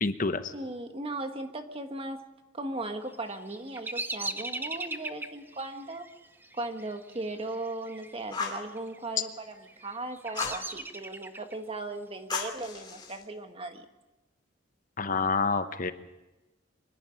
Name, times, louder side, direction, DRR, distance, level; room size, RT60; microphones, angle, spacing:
voice 1, 0.0-0.5 15.0-15.9, left 4 dB, 45° left, 10 dB, 1.0 m, -28 dB
voice 2, 0.5-2.3 2.5-6.1 6.5-13.8, right 2 dB, 30° right, 7 dB, 1.5 m, -37 dB
Bird vocalization bird call bird song, 3.1-8.1 8.4-9.0 9.6-11.5, right 2 dB, 10° right, 0.8 m, -39 dB
Fire, 8.3-8.7 10.3-10.6 12.3-13.2, left 5 dB, 25° left, 2.6 m, -34 dB
25.0 x 11.0 x 10.0 m, 1.1 s
head